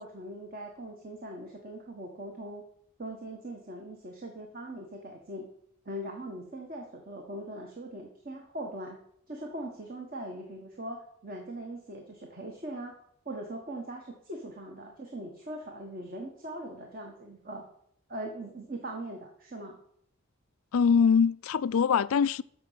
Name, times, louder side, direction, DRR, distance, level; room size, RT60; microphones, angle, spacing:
voice 1, 0.0-2.6 3.0-5.5 5.8-9.0 9.3-13.0 13.2-17.6 18.1-19.8, right 1 dB, 40° right, 1.6 m, -41 dB
voice 2, 20.7-22.4, left 6 dB, 80° left, 0.4 m, -23 dB
13.5 x 5.4 x 7.6 m
head